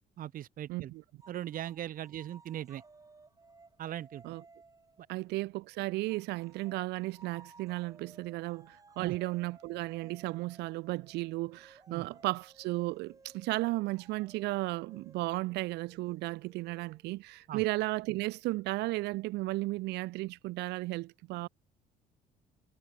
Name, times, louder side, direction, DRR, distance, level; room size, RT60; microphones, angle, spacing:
voice 1, 0.2-0.9 1.3-2.8 3.8-4.2 5.0-5.1 9.0-9.2 11.9-12.1 17.5-17.6, right 12 dB, 55° right, 1.0 m, -39 dB
voice 2, 0.7-1.0 4.2-4.4 5.1-21.5, right 20 dB, 85° right, 0.8 m, -34 dB
sound 1, 1.2-5.6 6.1-17.5, right 3 dB, 20° right, 5.5 m, -59 dB
cardioid pair, 110°, 17 cm